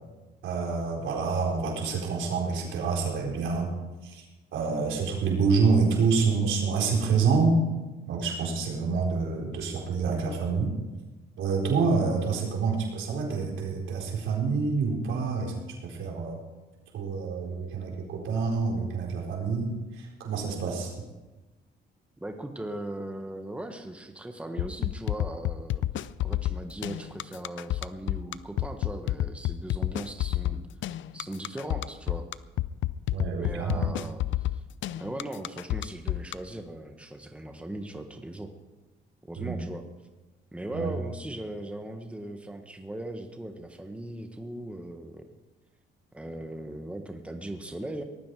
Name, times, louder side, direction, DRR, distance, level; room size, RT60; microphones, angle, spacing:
voice 1, 0.4-3.7 4.0-4.2 4.5-7.5 8.1-10.7 11.4-15.5 15.8-16.4 16.9-20.9 33.1-33.8 39.4-39.6 40.7-40.9, right 5 dB, 80° right, -1 dB, 4.4 m, -27 dB
voice 2, 22.2-25.8 26.2-30.6 31.1-32.3 33.4-34.6 35.0-38.5 39.3-39.8 40.5-45.3 46.1-48.0, right 1 dB, 5° right, 5 dB, 1.4 m, -38 dB
sound 1, 24.6-36.3, left 14 dB, 75° left, 0.5 m, -29 dB
18.5 x 14.0 x 4.8 m, 1.2 s
cardioid pair, 90°, 20 cm